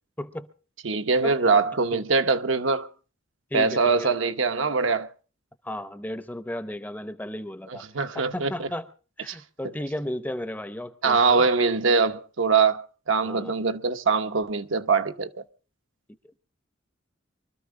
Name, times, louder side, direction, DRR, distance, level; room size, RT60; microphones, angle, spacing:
voice 1, 0.2-0.5 1.2-1.6 1.9-2.1 3.5-4.2 5.6-7.8 8.1-8.9 9.2-11.5 13.2-13.6, left 1 dB, 10° left, 0.7 m, -34 dB
voice 2, 0.8-2.9 3.5-5.1 7.7-8.7 9.3-9.4 11.0-15.4, right 4 dB, 70° right, 0.9 m, -23 dB
24.0 x 13.5 x 3.7 m
head